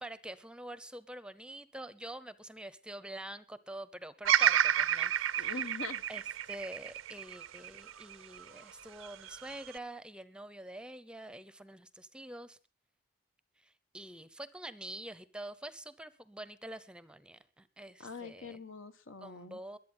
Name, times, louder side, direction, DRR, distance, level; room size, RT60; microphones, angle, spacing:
voice 1, 0.0-5.6 6.1-12.6 13.6-18.6 19.2-19.8, right 1 dB, 5° right, 15 dB, 0.7 m, -46 dB
Bird vocalization bird call bird song, 4.2-8.5 9.0-9.8, right 10 dB, 70° right, 0.6 m, -30 dB
voice 2, 5.4-6.0 18.0-19.6, left 4 dB, 70° left, 9 dB, 1.4 m, -43 dB
22.5 x 8.5 x 5.5 m, 0.38 s
head